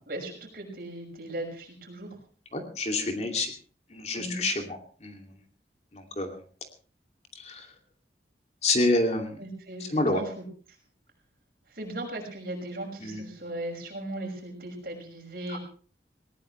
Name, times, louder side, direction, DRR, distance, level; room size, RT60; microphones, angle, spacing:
voice 1, 0.1-2.1 4.2-4.4 9.4-10.4 11.7-15.6, right 1 dB, 55° right, 1 dB, 6.1 m, -37 dB
voice 2, 2.5-3.5 3.9-5.3 5.9-6.4 7.3-7.7 8.6-9.4 9.8-10.2 13.0-13.2 15.5-15.6, left 2 dB, 40° left, 4 dB, 2.6 m, -28 dB
20.0 x 18.5 x 3.3 m, 0.41 s
head